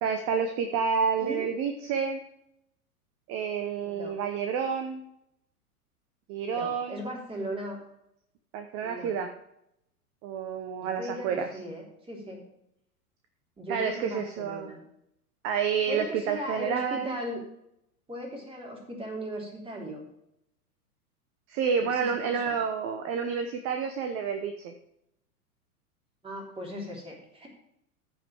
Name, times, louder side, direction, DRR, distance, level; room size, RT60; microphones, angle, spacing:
voice 1, 0.0-2.2 3.3-5.0 6.3-7.0 8.5-9.3 10.2-11.6 13.7-14.7 15.4-17.2 21.5-24.7, right 6 dB, 30° right, 7 dB, 1.0 m, -29 dB
voice 2, 3.8-4.1 6.5-7.8 8.8-9.1 10.8-12.4 13.6-14.8 15.9-17.4 18.1-20.0 21.9-22.5 26.2-27.5, equal, 10° right, -1 dB, 3.4 m, -38 dB
14.5 x 5.2 x 4.9 m, 0.78 s
figure-of-eight pair, 95°, 45 cm